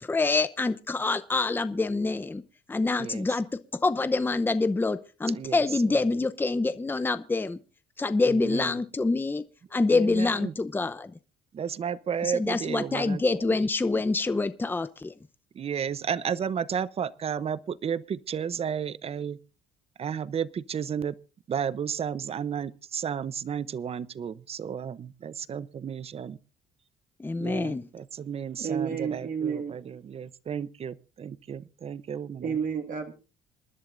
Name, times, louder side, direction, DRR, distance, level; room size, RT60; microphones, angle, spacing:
voice 1, 0.0-2.4 2.7-7.6 8.0-9.4 9.7-11.1 12.4-15.1 27.2-27.8, left 3 dB, 10° left, 0.7 m, -26 dB
voice 2, 3.0-3.4 5.3-6.2 8.2-8.8 9.9-10.5 11.5-13.6 13.9-14.0 15.5-19.4 20.0-21.1 21.5-26.4 27.4-32.6, right 7 dB, 35° right, 0.7 m, -33 dB
voice 3, 28.6-29.8 32.4-33.1, right 7 dB, 50° right, 2.0 m, -30 dB
27.0 x 11.0 x 2.6 m
cardioid pair, 110°, 17 cm